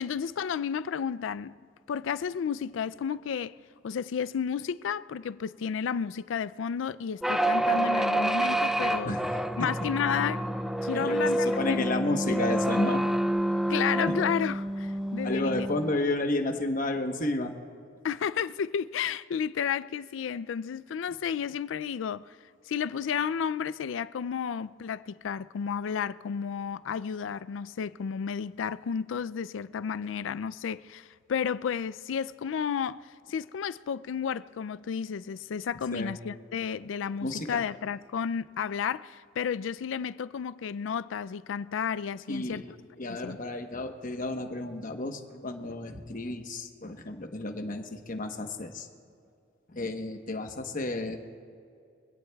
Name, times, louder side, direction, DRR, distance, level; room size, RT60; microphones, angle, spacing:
voice 1, 0.0-1.6 1.9-3.5 3.8-9.2 9.6-10.5 10.8-12.0 13.7-15.7 18.0-22.3 22.7-33.0 33.3-42.6 43.2-43.4, left 7 dB, 85° left, 0.4 m, -32 dB
sound 1, 7.2-16.0, right 1 dB, ahead, 0.4 m, -28 dB
voice 2, 10.9-13.1 15.2-17.5 35.9-36.1 37.2-37.6 42.3-42.7 43.0-48.9 49.7-51.2, left 2 dB, 45° left, 1.1 m, -32 dB
24.5 x 17.0 x 2.3 m
head